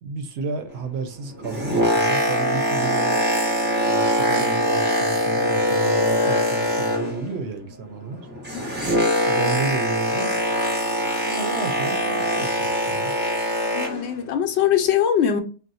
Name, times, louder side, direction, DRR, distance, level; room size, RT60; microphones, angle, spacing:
voice 1, 0.0-3.2 3.9-8.2 9.3-10.4 11.1-13.1, right 5 dB, 70° right, 0.8 m, -32 dB
Boat Water vehicle, 1.3-7.4 7.7-14.1 14.8-14.9, equal, 10° right, 0.8 m, -23 dB
voice 2, 13.7-15.4, left 9 dB, 75° left, 0.9 m, -22 dB
2.5 x 2.1 x 4.0 m
omnidirectional pair, 1.2 m